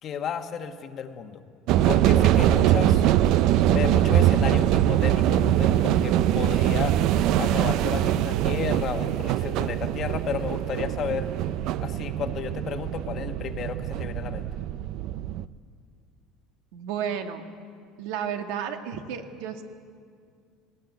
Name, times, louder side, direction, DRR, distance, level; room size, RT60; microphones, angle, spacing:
voice 1, 0.0-1.4 1.9-3.0 3.7-7.0 7.4-11.3 11.8-14.5, left 7 dB, 40° left, 7 dB, 1.3 m, -33 dB
sound 1, 1.7-15.5, right 11 dB, 60° right, 0.6 m, -23 dB
voice 2, 16.7-17.4 18.0-19.6, right 8 dB, 80° right, 5 dB, 1.9 m, -32 dB
19.0 x 18.0 x 9.3 m, 2.2 s
cardioid pair, 140°, 0 cm